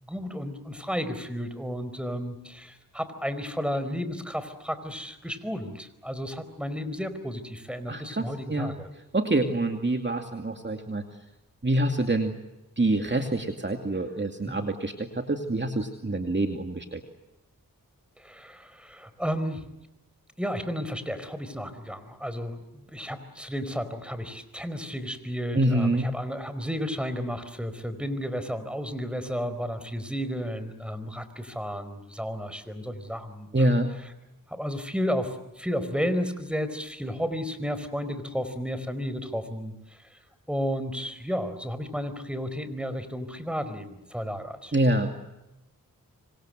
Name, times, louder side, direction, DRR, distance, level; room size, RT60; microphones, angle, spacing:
voice 1, 0.0-8.9 14.4-14.6 18.2-19.7 20.4-33.7 34.5-40.2 40.5-44.7, equal, 5° right, 11 dB, 4.6 m, -33 dB
voice 2, 7.9-8.7 9.1-11.0 11.6-12.4 12.8-17.0 25.5-26.1 33.5-33.9 44.7-45.1, right 1 dB, 30° right, 5 dB, 2.5 m, -26 dB
26.5 x 26.0 x 7.8 m, 0.95 s
cardioid pair, 50°, 35 cm